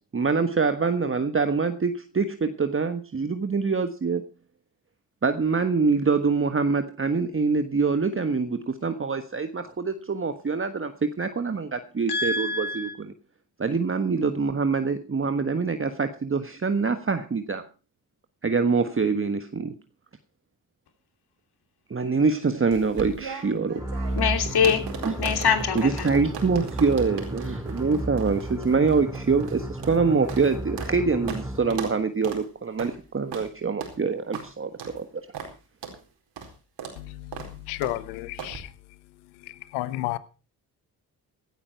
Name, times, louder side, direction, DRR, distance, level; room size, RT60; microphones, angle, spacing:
voice 1, 0.1-4.2 5.2-13.1 13.6-17.6 18.4-19.7 21.9-23.9 25.0-25.1 25.7-35.1, right 4 dB, 30° right, 9 dB, 1.4 m, -25 dB
voice 2, 12.1-12.9 24.2-24.8 25.2-26.1, left 6 dB, 55° left, 7 dB, 3.1 m, -24 dB
sound 1, 22.7-31.0 31.3-31.4 31.7-32.0 32.2-32.4 32.8-33.0 33.3-33.5 33.8-34.0 34.3-34.5 34.8-35.0 35.3-35.5 35.8-36.0 36.4-36.5 36.8-37.0 37.3-37.5 37.8-38.0 38.4-38.6, right 6 dB, 65° right, 4.5 m, -38 dB
sound 2, 23.8-32.0, right 1 dB, 5° right, 3.3 m, -33 dB
voice 3, 37.7-38.6 39.7-40.2, left 17 dB, 85° left, 17 dB, 1.1 m, -30 dB
16.5 x 12.0 x 4.6 m, 0.34 s
hypercardioid pair, 45°, 45 cm